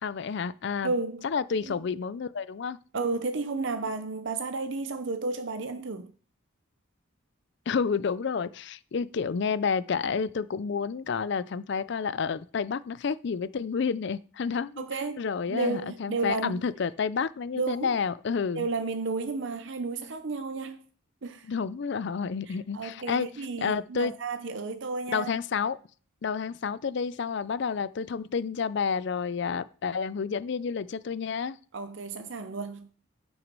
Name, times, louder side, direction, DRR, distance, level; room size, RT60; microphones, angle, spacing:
voice 1, 0.0-0.9 1.2-2.8 7.7-14.8 15.2-18.6 21.5-23.3 23.6-24.1 25.1-25.8 26.2-31.6, left 5 dB, 55° left, 0.4 m, -30 dB
voice 2, 0.8-1.2 1.6-1.8 2.9-6.1 14.8-15.2 15.5-16.5 17.6-18.0 18.5-20.9 21.2-21.5 22.5-25.3 31.7-32.9, right 3 dB, 60° right, 0.6 m, -32 dB
9.0 x 6.3 x 5.3 m
head